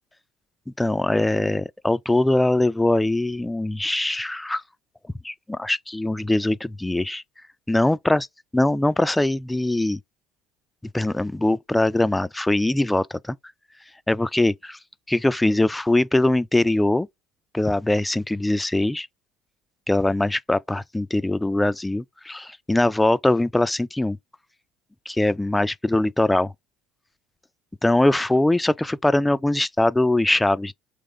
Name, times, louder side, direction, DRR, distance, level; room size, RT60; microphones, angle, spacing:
voice 1, 0.8-4.6 5.2-7.2 7.7-8.3 8.5-10.0 10.8-13.4 14.1-14.8 15.1-17.1 17.5-19.1 19.9-24.2 25.1-26.5 27.8-30.7, left 1 dB, 10° left, 0.3 m, -22 dB
3.4 x 3.0 x 3.8 m
hypercardioid pair, 65°, 0 cm